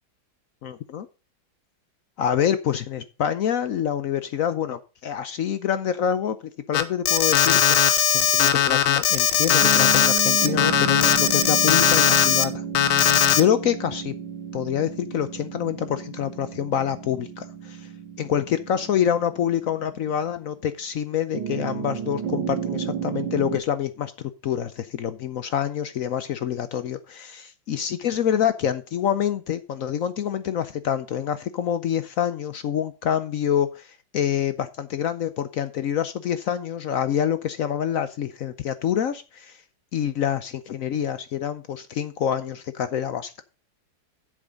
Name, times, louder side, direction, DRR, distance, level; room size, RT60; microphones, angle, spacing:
voice 1, 0.6-1.1 2.2-6.4 6.7-13.1 13.4-14.2 14.5-17.9 18.2-39.6 39.9-43.4, left 9 dB, 70° left, 0.8 m, -26 dB
Alarm, 6.7-12.4 12.7-13.4, left 9 dB, 90° left, 1.6 m, -19 dB
sound 1, 9.6-20.3 21.3-23.6, right 7 dB, 80° right, 2.0 m, -32 dB
8.0 x 7.3 x 5.2 m
omnidirectional pair, 2.1 m